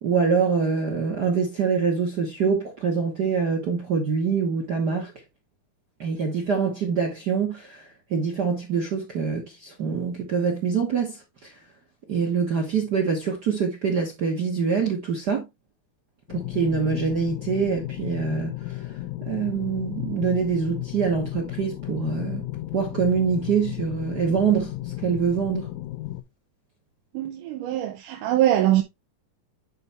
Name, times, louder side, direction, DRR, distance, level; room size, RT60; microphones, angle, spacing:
voice 1, 0.0-5.1 6.0-11.5 12.1-15.4 16.3-18.6 19.3-24.7 25.0-25.7, right 6 dB, 55° right, 1.1 m, -25 dB
sound 1, 16.3-26.2, left 16 dB, 80° left, 1.9 m, -34 dB
voice 2, 27.1-28.8, right 13 dB, 85° right, 2.3 m, -22 dB
10.0 x 4.1 x 3.3 m
omnidirectional pair, 3.6 m